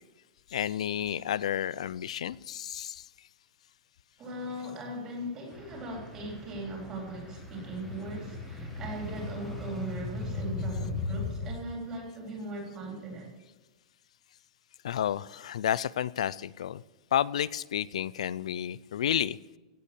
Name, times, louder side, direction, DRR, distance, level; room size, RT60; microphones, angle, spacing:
voice 1, 0.5-3.1 14.8-16.8 17.1-19.4, left 10 dB, 85° left, 19 dB, 0.4 m, -31 dB
voice 2, 4.2-13.3, right 1 dB, 20° right, -1 dB, 3.8 m, -39 dB
sound 1, 5.5-11.5, left 3 dB, ahead, 1.8 m, -37 dB
16.5 x 8.5 x 6.9 m, 1.1 s
supercardioid pair, 180°, 3 cm